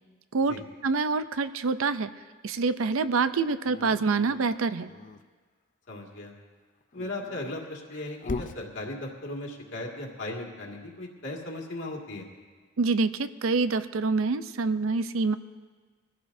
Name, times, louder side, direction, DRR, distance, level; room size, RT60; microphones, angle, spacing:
voice 1, 0.8-2.1 2.4-4.9 12.8-15.4, right 4 dB, 70° right, 12 dB, 0.5 m, -26 dB
Dog, 3.6-5.2 6.8-8.6, left 3 dB, 35° left, 0.5 m, -39 dB
voice 2, 5.9-6.3 6.9-12.3, left 2 dB, 60° left, 0 dB, 2.2 m, -37 dB
23.0 x 15.0 x 2.7 m, 1.4 s
head